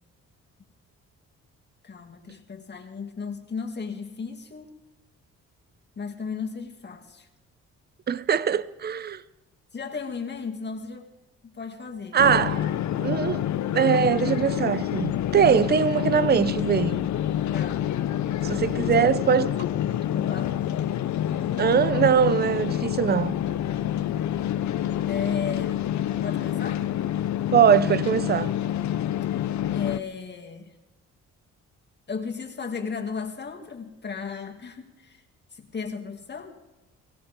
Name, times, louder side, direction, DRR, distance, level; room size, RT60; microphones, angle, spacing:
voice 1, 1.8-4.7 6.0-7.3 9.7-11.1 11.4-12.2 17.5-17.9 18.8-19.1 19.6-20.8 21.4-21.5 24.1-24.3 25.1-25.9 26.2-26.8 29.7-30.7 32.1-35.2 35.5-36.5, left 5 dB, 35° left, 2.4 m, -35 dB
voice 2, 8.1-9.2 12.1-12.7 13.0-17.1 18.4-19.5 21.6-23.4 27.5-28.6, right 7 dB, 35° right, 0.7 m, -22 dB
sound 1, 12.2-30.0, left 11 dB, 70° left, 0.8 m, -27 dB
23.5 x 16.5 x 3.7 m
cardioid pair, 90°, 30 cm